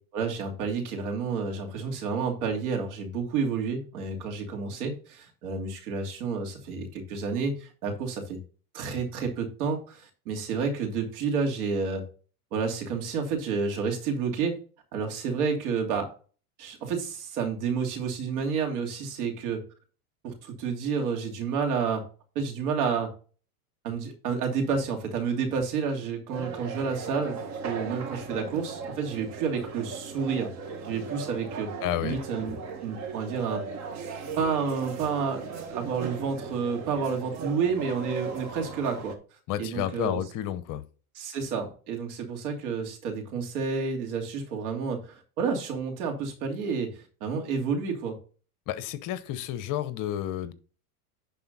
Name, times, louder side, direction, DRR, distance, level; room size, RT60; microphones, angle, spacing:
voice 1, 0.1-8.4 8.7-12.0 12.5-14.6 14.9-16.1 16.6-19.6 20.2-22.0 22.3-23.1 23.8-30.5 30.8-31.7 32.0-33.6 34.4-39.1 39.6-40.2 41.1-48.2, right 5 dB, 70° right, 3 dB, 2.9 m, -30 dB
sound 1, 26.3-39.2, right 5 dB, 35° right, 1.7 m, -38 dB
voice 2, 31.8-32.2 39.5-40.8 48.7-50.5, left 12 dB, 45° left, 13 dB, 0.9 m, -31 dB
11.0 x 4.2 x 4.0 m, 0.38 s
supercardioid pair, 115°, 45 cm